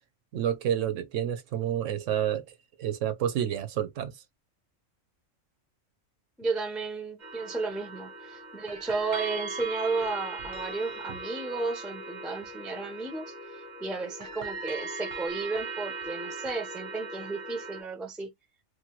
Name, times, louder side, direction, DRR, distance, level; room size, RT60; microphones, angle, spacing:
voice 1, 0.3-2.4 2.8-4.1, right 10 dB, 75° right, 0.9 m, -29 dB
voice 2, 6.4-13.3 13.8-18.3, right 3 dB, ahead, 0.4 m, -33 dB
sound 1, 7.2-17.8, right 3 dB, 45° right, 0.7 m, -39 dB
3.1 x 2.2 x 2.9 m
omnidirectional pair, 1.4 m